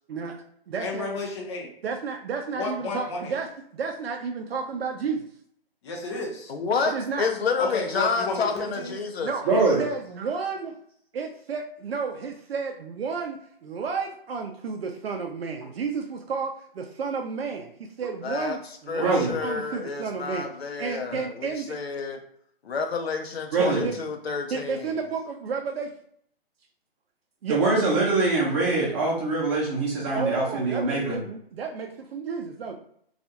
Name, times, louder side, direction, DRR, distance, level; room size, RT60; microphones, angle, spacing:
voice 1, 0.1-1.1 1.8-3.5 3.7-5.3 6.9-7.3 9.2-10.7 11.1-17.7 18.0-20.5 20.8-21.7 23.5-24.0 24.5-25.9 27.4-27.6 30.1-32.8, right 5 dB, 75° right, 3 dB, 0.5 m, -32 dB
voice 2, 0.8-1.7 2.5-3.4 5.8-6.5 7.6-9.0, left 3 dB, 30° left, 0 dB, 0.5 m, -32 dB
voice 3, 6.5-9.3 18.2-18.6 18.9-22.2 22.6-24.9, left 5 dB, 85° left, 5 dB, 0.6 m, -29 dB
voice 4, 9.4-9.8 19.0-19.3 23.5-23.9 27.5-31.2, right 3 dB, 30° right, -5 dB, 0.6 m, -23 dB
2.4 x 2.2 x 2.8 m, 0.66 s
hypercardioid pair, 145°, 30 cm